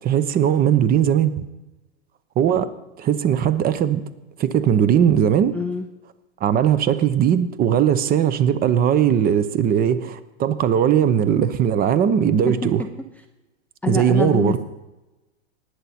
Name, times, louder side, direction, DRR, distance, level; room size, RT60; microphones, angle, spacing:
voice 1, 0.0-1.4 2.4-2.7 3.0-4.0 4.4-5.5 6.4-12.8 13.9-14.6, right 9 dB, 25° right, 14 dB, 0.8 m, -19 dB
voice 2, 5.5-5.9 12.5-12.7 13.8-14.6, left 4 dB, 5° left, 5 dB, 0.5 m, -25 dB
19.0 x 7.9 x 4.3 m, 1.0 s
hypercardioid pair, 120°, 36 cm